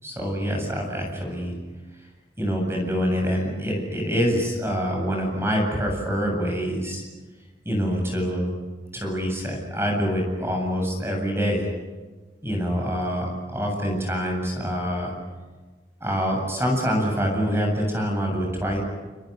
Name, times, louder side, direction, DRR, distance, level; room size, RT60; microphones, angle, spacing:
voice 1, 0.0-1.5 2.4-7.0 7.6-8.5 8.9-11.7 12.4-15.1 16.0-18.8, equal, 15° right, 1 dB, 7.9 m, -25 dB
29.0 x 27.5 x 6.8 m, 1.3 s
head